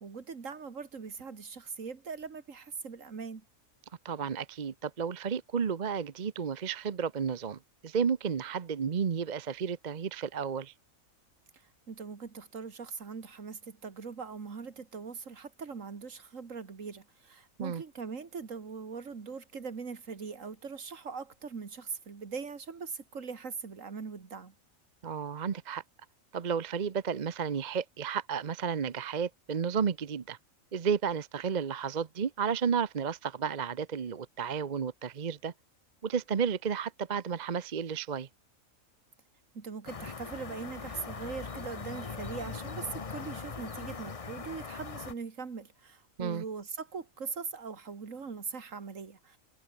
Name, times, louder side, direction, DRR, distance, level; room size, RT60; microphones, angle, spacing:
voice 1, 0.0-3.4 11.5-24.6 39.5-49.4, right 5 dB, 70° right, 2.4 m, -41 dB
voice 2, 4.0-10.7 17.6-17.8 25.0-25.8 26.3-30.4 30.7-35.5 36.0-38.3 46.2-46.4, right 6 dB, 40° right, 0.8 m, -32 dB
sound 1, 39.9-45.1, left 5 dB, 30° left, 0.9 m, -41 dB
omnidirectional pair, 1.4 m